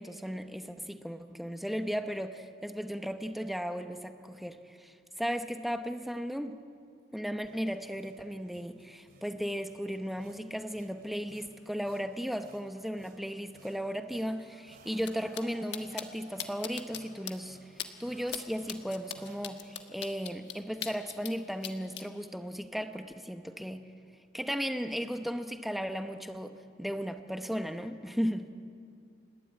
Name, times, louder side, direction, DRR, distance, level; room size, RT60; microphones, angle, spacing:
voice 1, 0.0-6.6 7.1-17.6 18.0-23.9 24.3-28.5, equal, ahead, 7 dB, 0.9 m, -36 dB
sound 1, 7.4-19.5, right 2 dB, 55° right, 2.5 m, -58 dB
sound 2, 15.0-15.1 15.3-15.4 15.7-16.0 16.4-17.0 17.3-17.4 17.8-17.9 18.3-18.4 18.7-21.3 21.6-22.0, left 10 dB, 70° left, 1.4 m, -38 dB
30.0 x 11.5 x 8.9 m, 2.4 s
head